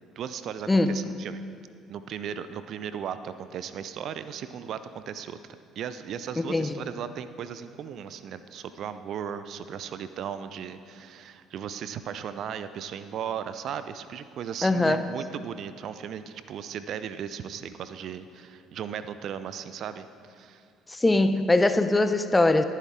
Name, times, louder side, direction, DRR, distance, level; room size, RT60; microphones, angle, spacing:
voice 1, 0.2-1.4 1.9-5.4 5.8-20.7, right 8 dB, 55° right, 12 dB, 0.5 m, -36 dB
voice 2, 14.6-15.0 20.9-22.6, left 2 dB, 15° left, 9 dB, 0.7 m, -21 dB
18.5 x 10.0 x 3.7 m, 2.3 s
figure-of-eight pair, 55°, 0 cm